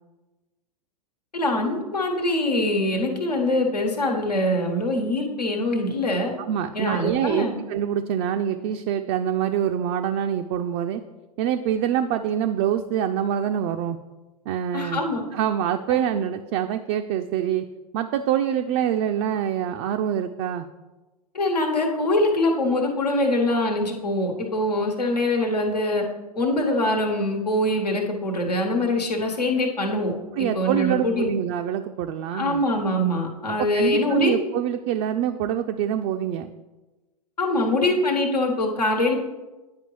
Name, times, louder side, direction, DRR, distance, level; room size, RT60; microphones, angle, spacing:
voice 1, 1.3-6.3 6.7-7.6 14.7-15.2 15.9-16.0 21.3-26.0 26.3-31.3 32.3-34.3 37.4-39.1, left 1 dB, 90° left, 1 dB, 1.3 m, -23 dB
voice 2, 6.5-11.0 11.4-14.0 14.5-15.1 15.3-17.7 17.9-20.7 30.4-32.6 33.6-36.5, right 10 dB, 40° right, 6 dB, 0.4 m, -25 dB
9.3 x 5.0 x 3.1 m, 1.2 s
hypercardioid pair, 105°, 20 cm